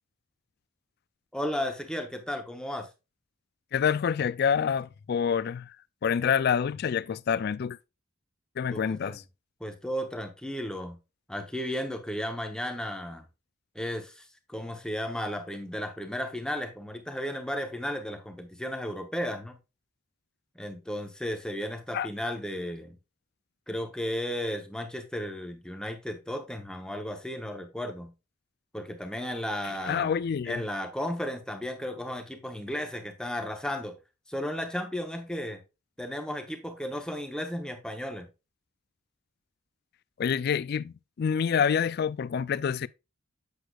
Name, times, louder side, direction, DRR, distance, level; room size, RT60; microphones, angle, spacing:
voice 1, 1.3-2.9 8.7-9.2 9.6-11.0 11.3-13.3 13.7-19.6 20.5-23.0 23.7-28.1 28.7-30.1 30.5-34.0 34.3-35.6 36.0-38.3, equal, 5° left, 0.8 m, -34 dB
voice 2, 3.7-5.7 6.0-7.8 8.6-9.2 21.9-22.1 29.8-30.6 40.2-42.9, left 7 dB, 50° left, 0.3 m, -27 dB
8.0 x 6.6 x 2.3 m
head